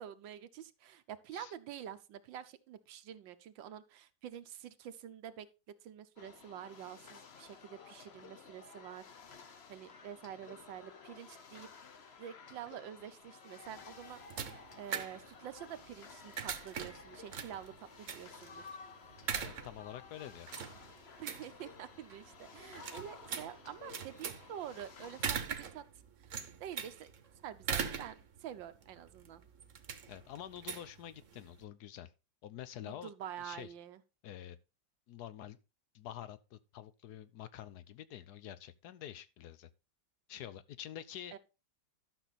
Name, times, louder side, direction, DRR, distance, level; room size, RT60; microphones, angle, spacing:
voice 1, 0.0-5.5 5.8-11.7 12.2-18.7 21.2-25.8 26.2-26.3 26.6-27.1 27.4-29.4 32.8-34.0 41.3-41.4, right 10 dB, 85° right, 1.6 m, -47 dB
sound 1, 6.2-25.3, left 5 dB, 45° left, 1.0 m, -54 dB
sound 2, 13.7-31.6, right 7 dB, 50° right, 1.2 m, -42 dB
voice 2, 19.3-20.5 30.1-32.1 32.4-33.1 33.4-33.7 34.2-34.6 35.1-35.6 35.9-39.7 40.3-41.3, left 11 dB, 65° left, 1.2 m, -47 dB
12.0 x 6.5 x 4.1 m
omnidirectional pair, 2.0 m